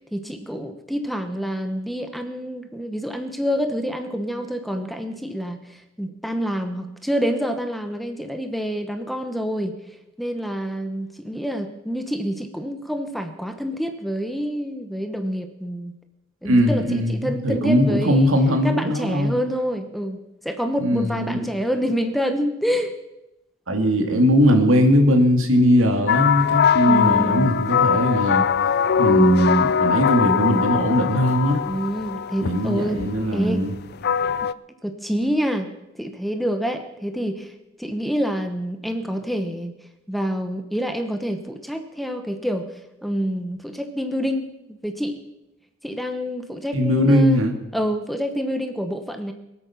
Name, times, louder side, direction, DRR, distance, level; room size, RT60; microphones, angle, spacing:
voice 1, 0.1-9.8 10.2-15.9 16.4-18.3 18.6-22.9 26.8-27.5 31.7-33.6 34.4-34.5 34.8-35.7 36.0-37.5 37.8-39.7 40.1-42.7 43.0-45.1 45.8-47.5 47.7-49.3, equal, ahead, 7 dB, 0.9 m, -27 dB
voice 2, 16.4-19.4 20.8-21.5 23.7-28.4 29.0-31.6 32.4-33.7 46.7-47.5, equal, 80° right, 4 dB, 2.3 m, -19 dB
sound 1, 26.1-34.5, left 7 dB, 50° left, 0.4 m, -21 dB
22.5 x 8.5 x 5.8 m, 0.94 s
head